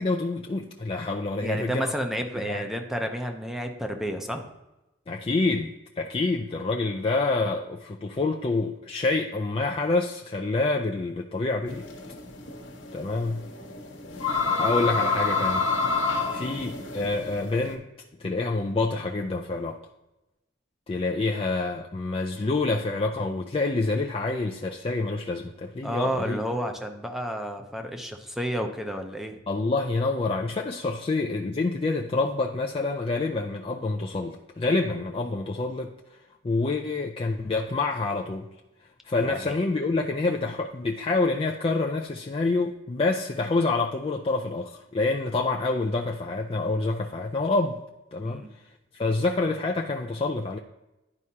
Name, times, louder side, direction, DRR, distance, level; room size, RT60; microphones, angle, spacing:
voice 1, 0.0-1.9 2.3-2.7 5.1-11.9 12.9-13.5 14.3-15.7 16.3-17.9 18.2-19.8 20.9-26.4 29.5-35.9 36.4-38.5 39.1-47.8 48.1-48.4 48.9-50.6, left 3 dB, 30° left, 1 dB, 0.4 m, -27 dB
voice 2, 1.4-4.5 25.8-29.4 39.2-39.5 48.2-48.5, equal, ahead, 4 dB, 0.7 m, -31 dB
sound 1, 11.7-17.7, left 4 dB, 75° left, 1.2 m, -27 dB
11.0 x 4.8 x 2.8 m, 0.97 s
head